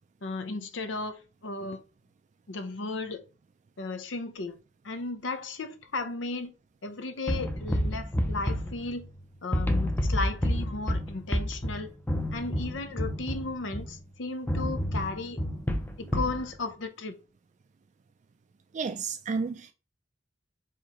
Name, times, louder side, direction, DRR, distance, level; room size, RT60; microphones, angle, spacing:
voice 1, 0.2-1.8 2.5-3.2 3.8-4.6 4.8-6.5 6.8-9.1 9.4-11.9 12.3-15.4 16.0-17.2, left 3 dB, 80° left, 0.7 m, -35 dB
sound 1, 7.3-9.2 9.5-14.0 14.5-16.4, equal, 10° left, 0.5 m, -29 dB
voice 2, 18.7-19.7, right 5 dB, 40° right, 0.3 m, -32 dB
4.6 x 3.6 x 3.0 m
head